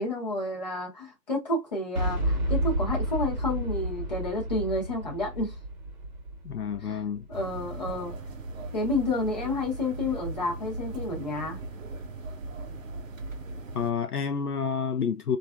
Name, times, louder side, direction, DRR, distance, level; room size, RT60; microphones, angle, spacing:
voice 1, 0.0-5.5 6.8-7.0 7.3-8.1 8.7-11.6, left 2 dB, 25° left, 0.8 m, -30 dB
Boom, 2.0-7.8, right 1 dB, 25° right, 1.1 m, -31 dB
voice 2, 6.4-7.3 13.7-15.4, left 6 dB, 65° left, 0.6 m, -29 dB
sound 1, 7.3-13.9, right 2 dB, 55° right, 0.6 m, -38 dB
3.1 x 2.5 x 2.3 m
figure-of-eight pair, 150°, 49 cm